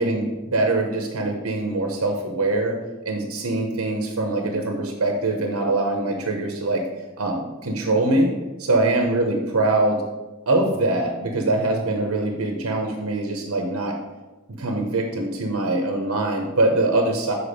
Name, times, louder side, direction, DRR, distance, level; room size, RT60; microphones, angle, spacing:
voice 1, 0.0-2.7 3.0-6.8 7.2-8.3 8.6-10.0 10.5-13.9 14.5-17.3, right 2 dB, 90° right, 2 dB, 0.9 m, -23 dB
6.9 x 4.7 x 4.9 m, 1.1 s
head